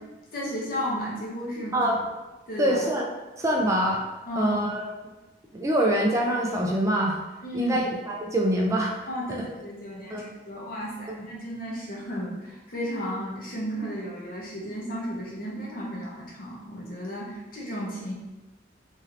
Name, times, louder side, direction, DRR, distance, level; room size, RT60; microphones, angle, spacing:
voice 1, 0.3-1.8 2.5-2.8 4.3-4.6 7.4-7.8 9.1-18.1, equal, 55° left, -5 dB, 0.8 m, -33 dB
voice 2, 2.6-3.1 3.4-4.0 4.4-4.9 5.5-7.2 7.5-8.9 10.1-10.2, right 1 dB, 15° right, -1 dB, 0.3 m, -24 dB
3.1 x 2.7 x 2.5 m, 1.1 s
head